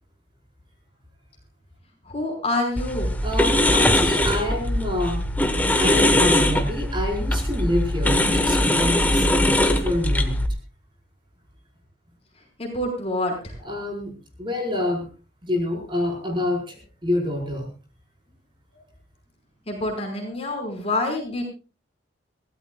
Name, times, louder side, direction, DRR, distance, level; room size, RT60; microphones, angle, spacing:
voice 1, 2.0-3.2 12.6-13.6 19.7-21.4, left 2 dB, 30° left, 2 dB, 5.4 m, -27 dB
sound 1, 2.8-10.5, left 1 dB, 10° left, 1.3 m, -21 dB
voice 2, 3.2-5.2 5.8-10.4 13.6-15.1 15.4-17.7 18.7-18.8, left 1 dB, 25° right, 1 dB, 4.9 m, -27 dB
23.5 x 16.5 x 2.4 m, 0.33 s
head